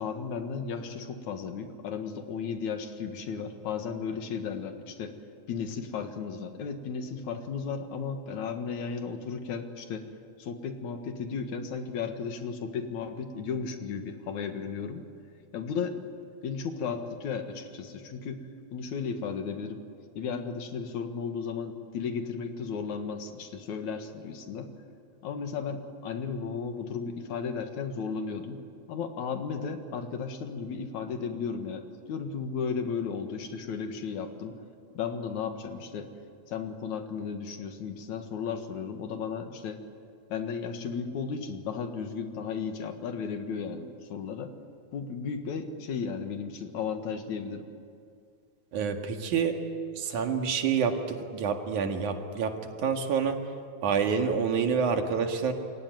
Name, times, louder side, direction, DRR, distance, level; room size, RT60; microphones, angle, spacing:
voice 1, 0.0-5.2 5.5-10.1 10.4-15.0 15.5-16.0 16.4-19.8 20.2-24.7 25.2-28.6 28.9-34.6 34.9-36.1 36.5-39.8 40.3-44.5 44.9-47.7, left 6 dB, 75° left, 7 dB, 3.0 m, -34 dB
voice 2, 48.7-49.6 49.9-53.4 53.8-55.5, right 6 dB, 80° right, 4 dB, 3.3 m, -28 dB
27.5 x 23.5 x 9.3 m, 2.4 s
omnidirectional pair, 3.4 m